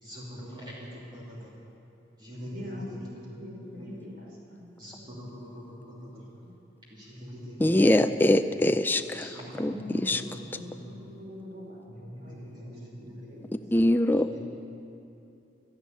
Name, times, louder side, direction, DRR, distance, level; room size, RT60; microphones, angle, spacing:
voice 1, 0.0-1.5 2.2-3.0 3.3-3.9 4.8-6.2 6.9-7.8 8.2-8.3 9.2-9.6 10.7-10.8 12.0-13.4 14.3-14.4, equal, 25° right, -6 dB, 2.9 m, -43 dB
voice 2, 2.4-2.9 3.4-5.3 6.4-6.5 9.6-12.7 12.9-13.5, left 1 dB, 55° right, -2 dB, 3.8 m, -44 dB
voice 3, 7.6-10.2 13.5-14.4, left 1 dB, 10° left, 8 dB, 0.4 m, -24 dB
12.0 x 11.5 x 9.6 m, 2.7 s
head